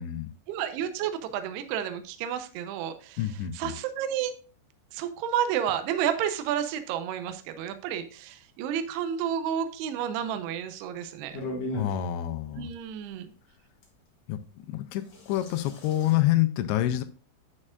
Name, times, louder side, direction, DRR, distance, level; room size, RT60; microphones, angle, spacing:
voice 1, 0.5-3.2 3.5-4.3 4.9-11.4 12.6-13.3, right 9 dB, 80° right, 9 dB, 2.6 m, -31 dB
voice 2, 3.2-3.8 11.7-12.7 14.3-17.0, left 13 dB, 85° left, 10 dB, 2.8 m, -27 dB
sound 1, 11.3-11.9 13.8-13.9 14.9-16.2, left 1 dB, 50° left, 2.2 m, -36 dB
9.8 x 6.5 x 2.4 m, 0.38 s
omnidirectional pair, 5.1 m